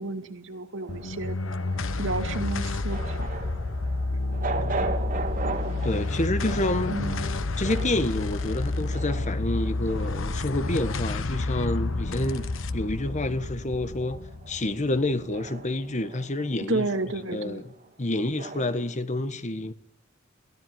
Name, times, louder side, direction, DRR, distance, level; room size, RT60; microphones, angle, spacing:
voice 1, 0.0-1.4 2.0-3.3 6.9-7.3 16.7-17.6, right 2 dB, 70° right, 2.6 m, -31 dB
sound 1, 0.8-13.4 13.7-19.0, right 3 dB, 45° right, 3.2 m, -39 dB
sound 2, 0.9-15.5, left 2 dB, 75° left, 1.1 m, -30 dB
voice 2, 5.8-7.0 7.6-16.9 17.3-17.7 18.0-19.7, left 1 dB, 35° left, 1.3 m, -28 dB
23.0 x 17.0 x 9.5 m
head